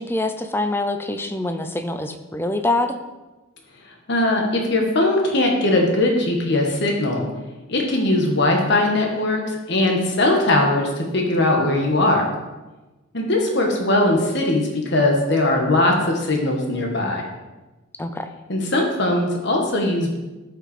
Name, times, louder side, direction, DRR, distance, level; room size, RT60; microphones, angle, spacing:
voice 1, 0.0-3.0 18.0-18.3, left 2 dB, 10° left, 8 dB, 0.5 m, -25 dB
voice 2, 3.8-7.3 7.7-12.3 13.1-17.2 18.5-20.2, left 2 dB, 55° left, 1 dB, 1.5 m, -20 dB
13.0 x 5.8 x 4.3 m, 1.1 s
head